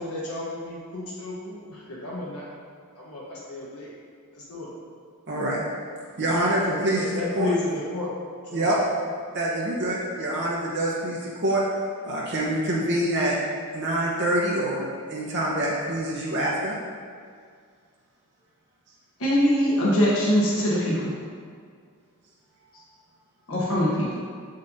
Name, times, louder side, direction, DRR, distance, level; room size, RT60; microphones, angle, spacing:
voice 1, 0.0-2.4 2.9-3.9 4.3-4.7 6.5-8.1 8.4-8.9, left 2 dB, 90° left, -7 dB, 1.0 m, -32 dB
voice 2, 5.3-5.6 6.2-7.5 8.5-8.8 9.3-11.6 12.1-13.4 13.7-16.7, right 1 dB, 50° right, -5 dB, 0.8 m, -26 dB
voice 3, 19.2-21.1 23.5-24.1, equal, 65° left, -7 dB, 1.2 m, -22 dB
6.9 x 5.2 x 2.7 m, 2.1 s
head